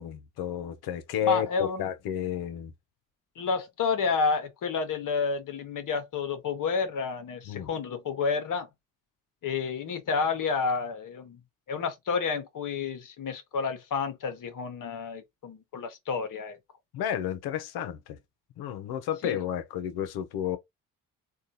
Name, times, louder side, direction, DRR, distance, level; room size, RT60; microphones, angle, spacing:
voice 1, 0.0-2.7 7.5-7.7 16.9-18.2 18.6-20.6, left 10 dB, 70° left, 0.8 m, -31 dB
voice 2, 1.2-1.9 3.4-8.7 9.4-11.4 11.7-16.6 19.2-19.4, left 5 dB, 50° left, 1.1 m, -30 dB
3.6 x 2.4 x 2.7 m
hypercardioid pair, 60°, 39 cm